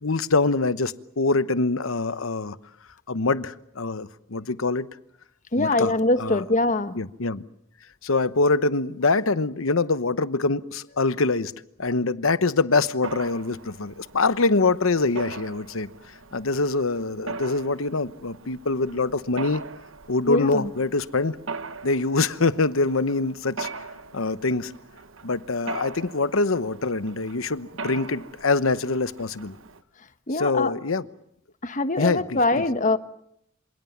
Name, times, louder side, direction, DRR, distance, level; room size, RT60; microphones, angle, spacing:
voice 1, 0.0-2.6 3.1-4.9 5.6-5.9 6.2-6.4 7.0-7.4 8.0-11.5 11.8-15.9 16.3-19.6 20.1-21.4 21.8-23.7 24.1-24.7 25.2-29.6 30.4-31.0 32.0-32.4, left 3 dB, 85° left, 1.0 m, -24 dB
voice 2, 5.5-7.0 20.3-20.7 30.3-30.7 31.6-33.0, left 2 dB, 40° left, 1.3 m, -23 dB
Mechanisms, 13.0-29.8, right 4 dB, 75° right, 1.2 m, -41 dB
27.5 x 27.0 x 7.3 m
head